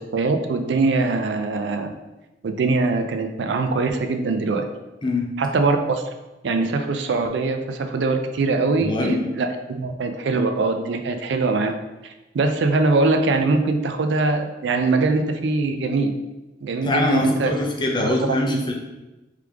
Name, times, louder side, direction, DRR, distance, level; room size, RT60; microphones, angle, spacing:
voice 1, 0.0-1.9 2.4-4.7 5.4-6.0 6.4-11.7 12.0-16.1 16.6-17.5 18.0-18.6, right 3 dB, 75° right, 7 dB, 0.4 m, -22 dB
voice 2, 8.8-9.2 16.8-18.7, left 1 dB, 25° left, -1 dB, 0.6 m, -23 dB
3.4 x 3.2 x 3.5 m, 1.1 s
head